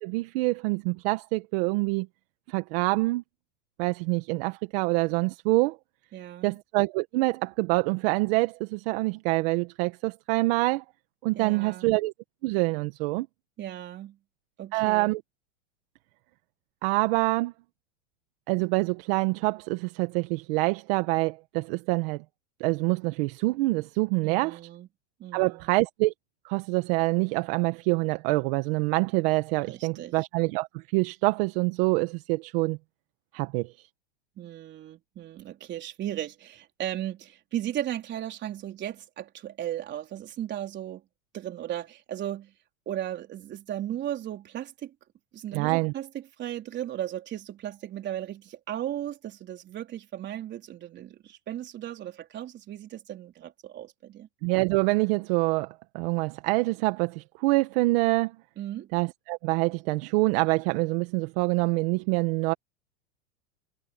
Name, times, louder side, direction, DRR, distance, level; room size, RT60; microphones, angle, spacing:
voice 1, 0.0-2.1 2.5-3.2 3.8-5.8 6.4-10.8 11.2-12.1 12.4-13.3 14.7-15.2 16.8-17.5 18.5-22.2 22.6-24.6 25.3-26.1 26.4-32.8 33.3-33.7 45.5-45.9 54.4-58.3 58.9-62.5, right 24 dB, 50° right, 1.5 m, -26 dB
voice 2, 6.1-6.6 11.3-12.0 13.6-14.2 14.6-15.2 24.2-24.9 25.2-25.8 29.7-30.1 34.4-41.0 41.3-42.5 42.9-44.9 45.3-54.3 58.6-58.9, right 12 dB, 30° right, 4.0 m, -36 dB
supercardioid pair, 140°, 37 cm